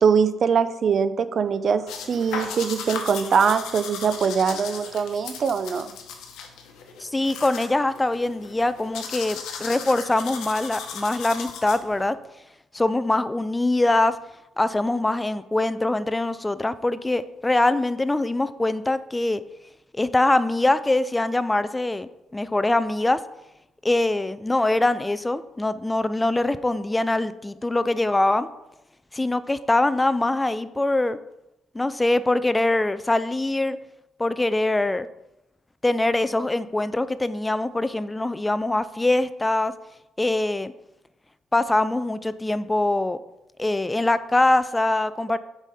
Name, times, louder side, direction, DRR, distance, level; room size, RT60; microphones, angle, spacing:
voice 1, 0.0-5.9, right 6 dB, 55° right, 13 dB, 0.5 m, -22 dB
sound 1, 1.9-12.1, left 6 dB, 85° left, 0.9 m, -37 dB
voice 2, 7.0-12.2 12.7-14.2 14.6-19.4 19.9-23.2 23.8-28.5 29.1-31.2 31.7-33.8 34.2-35.1 35.8-39.7 40.2-40.7 41.5-43.2 43.6-45.4, left 2 dB, 15° left, 14 dB, 0.3 m, -23 dB
7.3 x 4.9 x 4.1 m, 0.90 s
cardioid pair, 90°, 0 cm